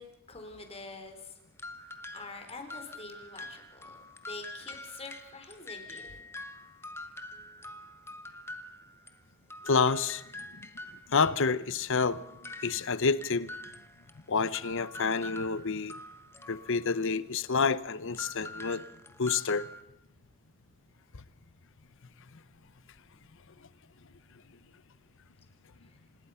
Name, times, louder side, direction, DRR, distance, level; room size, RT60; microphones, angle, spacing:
voice 1, 0.0-1.3 2.1-6.2, left 3 dB, 30° left, 3.9 m, -46 dB
sound 1, 1.6-9.2 9.5-17.1 18.1-19.8, left 2 dB, 10° left, 1.3 m, -45 dB
voice 2, 9.6-10.2 11.1-12.2 12.6-13.5 14.3-15.9 16.5-18.8 19.2-19.7 21.1-21.2, left 5 dB, 65° left, 0.9 m, -28 dB
26.0 x 20.5 x 5.7 m
head